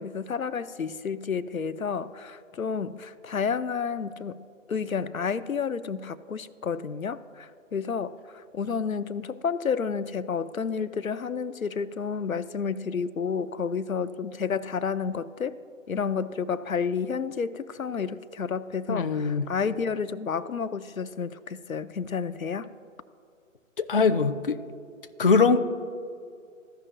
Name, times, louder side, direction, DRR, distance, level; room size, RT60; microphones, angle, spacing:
voice 1, 0.0-15.6 15.9-22.7, left 6 dB, 85° left, 12 dB, 0.6 m, -30 dB
voice 2, 18.9-19.4 23.8-24.6 25.2-25.6, left 4 dB, 45° left, 8 dB, 0.5 m, -22 dB
15.0 x 5.6 x 2.6 m, 2.4 s
figure-of-eight pair, 145°, 40 cm